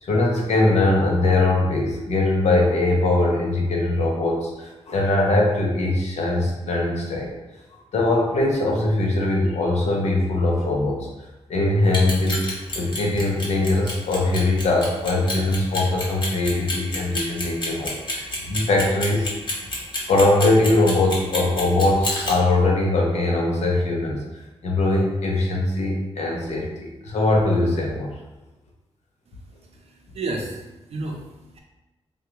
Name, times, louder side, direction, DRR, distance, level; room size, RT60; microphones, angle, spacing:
voice 1, 0.0-7.3 7.9-11.1 11.5-12.5 12.7-19.3 20.1-24.2 24.6-28.1, left 2 dB, 85° left, -1 dB, 0.7 m, -21 dB
Clock, 11.8-22.3, left 2 dB, 45° left, 0.9 m, -29 dB
voice 2, 29.6-31.6, right 2 dB, 65° right, 1 dB, 0.5 m, -32 dB
3.5 x 2.4 x 2.9 m, 1.0 s
wide cardioid pair, 115°, 11 cm